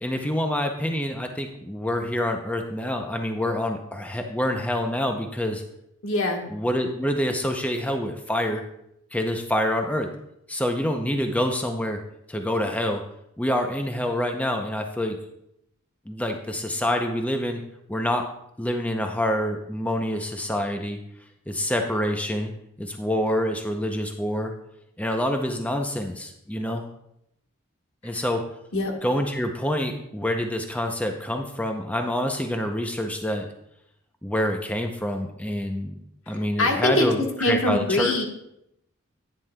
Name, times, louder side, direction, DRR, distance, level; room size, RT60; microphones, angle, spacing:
voice 1, 0.0-5.6 6.5-8.6 9.1-10.1 10.5-12.0 12.3-13.0 13.4-15.2 16.1-17.6 17.9-18.2 18.6-21.0 21.5-22.5 22.8-24.5 25.0-26.8 28.0-28.4 29.0-33.5 34.2-35.9 36.3-38.2, left 1 dB, 5° left, 4 dB, 0.5 m, -26 dB
voice 2, 6.0-6.5 28.1-28.3 28.7-28.9 36.3-38.2, left 2 dB, 85° left, 2 dB, 1.5 m, -24 dB
11.0 x 9.5 x 2.2 m, 0.79 s
head